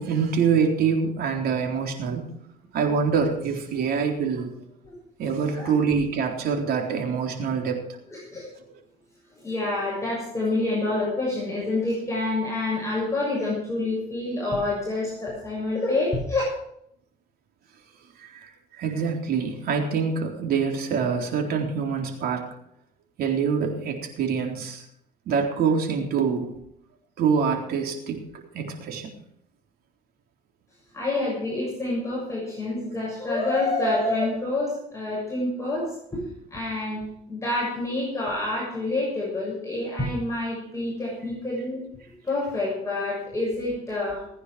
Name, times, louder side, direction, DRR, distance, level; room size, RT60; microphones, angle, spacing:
voice 1, 0.0-2.4 2.7-4.5 5.2-7.8 18.2-22.5 23.2-24.8 25.3-26.5 27.2-29.1, right 6 dB, 65° right, 2 dB, 3.9 m, -25 dB
voice 2, 8.1-8.5 9.3-16.4 30.9-36.2 36.5-41.8 42.2-44.2, left 2 dB, 15° left, -5 dB, 6.8 m, -27 dB
19.5 x 9.8 x 5.0 m, 0.73 s
cardioid pair, 110°, 17 cm